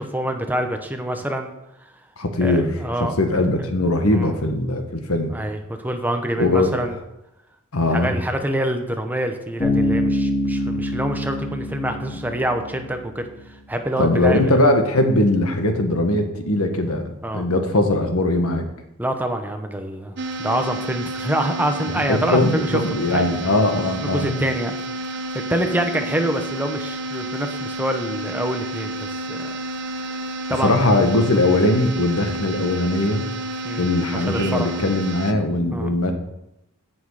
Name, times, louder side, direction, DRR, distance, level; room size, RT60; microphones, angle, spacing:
voice 1, 0.0-1.5 2.4-3.4 4.1-4.4 5.3-6.9 7.9-14.6 17.2-17.5 19.0-22.8 23.1-23.3 24.0-24.8 25.5-29.5 30.5-30.8 31.2-31.3 33.6-34.8 35.7-36.0, right 1 dB, 10° right, 5 dB, 0.9 m, -26 dB
voice 2, 2.2-2.7 3.0-5.3 6.4-6.7 7.7-8.1 14.0-18.7 22.1-24.3 30.6-33.2 33.8-36.1, left 2 dB, 80° left, 5 dB, 1.6 m, -20 dB
Bass guitar, 9.6-13.2, left 1 dB, 30° left, 3.7 m, -25 dB
sound 1, 20.2-35.3, right 1 dB, 50° right, 0.9 m, -30 dB
16.0 x 6.3 x 4.9 m, 0.87 s
head